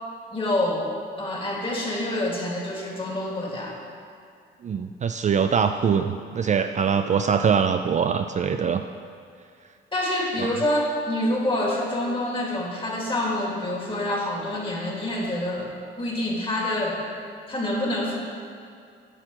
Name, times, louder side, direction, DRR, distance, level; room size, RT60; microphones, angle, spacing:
voice 1, 0.3-0.9 1.2-3.8 9.9-17.0 17.5-18.2, left 1 dB, 25° left, -2 dB, 2.2 m, -27 dB
voice 2, 4.6-8.8 10.4-10.5, right 6 dB, 35° right, 7 dB, 0.4 m, -23 dB
9.9 x 4.3 x 7.5 m, 2.4 s
cardioid pair, 90°, 20 cm